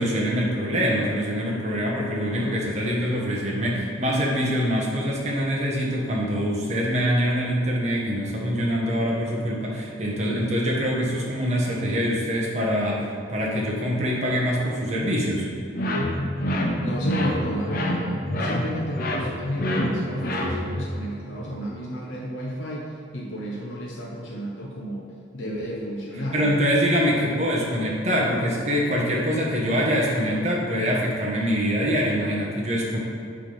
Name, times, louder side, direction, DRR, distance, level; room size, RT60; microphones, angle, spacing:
voice 1, 0.0-15.5 26.3-33.0, equal, 35° right, -3 dB, 1.3 m, -24 dB
sound 1, 15.7-20.9, left 1 dB, 50° left, 0.8 m, -26 dB
voice 2, 16.8-25.0 25.3-26.5, equal, 90° left, -3 dB, 1.0 m, -32 dB
8.5 x 3.5 x 5.6 m, 2.6 s
head